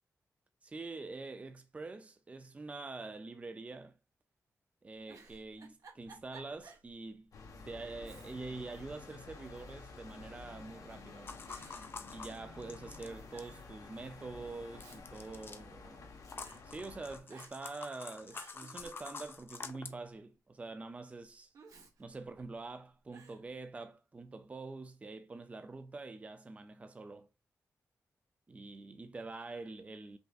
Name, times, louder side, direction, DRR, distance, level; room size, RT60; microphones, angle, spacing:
voice 1, 0.6-3.9 4.8-7.3 7.6-11.3 12.1-16.1 16.6-21.5 22.0-27.3 28.5-30.2, right 3 dB, 25° right, 0.4 m, -45 dB
Giggle, 5.1-6.9 7.3-7.4 8.0-8.7 9.0-9.8 10.6-11.0 11.5-12.7 13.0-13.1 13.3-13.7 14.5-16.0 16.4-16.6 17.3-17.8 18.1-19.5 21.5-22.7 23.1-23.4, right 4 dB, 75° right, 1.1 m, -58 dB
sound 1, 7.3-17.2, left 3 dB, 75° left, 1.1 m, -51 dB
sound 2, 11.3-13.5 14.8-15.6 16.3-19.9, left 4 dB, 40° left, 0.5 m, -47 dB
5.3 x 3.3 x 2.4 m
wide cardioid pair, 155°, 6 cm